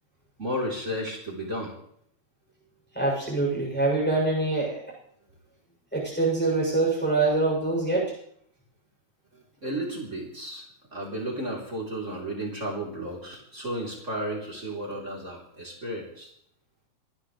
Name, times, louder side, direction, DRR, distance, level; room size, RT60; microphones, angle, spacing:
voice 1, 0.4-1.7 9.6-10.6 10.9-16.3, right 1 dB, 20° right, -1 dB, 3.7 m, -33 dB
voice 2, 2.9-4.8 5.9-8.1, right 3 dB, 5° left, -3 dB, 7.2 m, -24 dB
27.0 x 12.0 x 3.3 m, 0.68 s
omnidirectional pair, 4.0 m